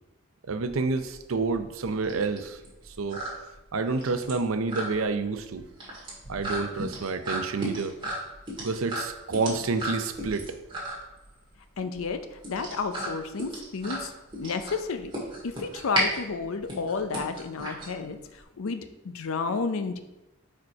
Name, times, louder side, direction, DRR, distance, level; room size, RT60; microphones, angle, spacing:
voice 1, 0.5-3.2 3.7-5.6 6.3-7.9 8.6-10.6, right 4 dB, 85° right, 9 dB, 0.6 m, -29 dB
sound 1, 0.7-18.4, right 1 dB, 25° right, 1.8 m, -35 dB
voice 2, 11.8-14.1 14.4-15.1 15.4-20.0, left 4 dB, 90° left, 9 dB, 0.6 m, -31 dB
5.0 x 4.7 x 4.7 m, 0.98 s
head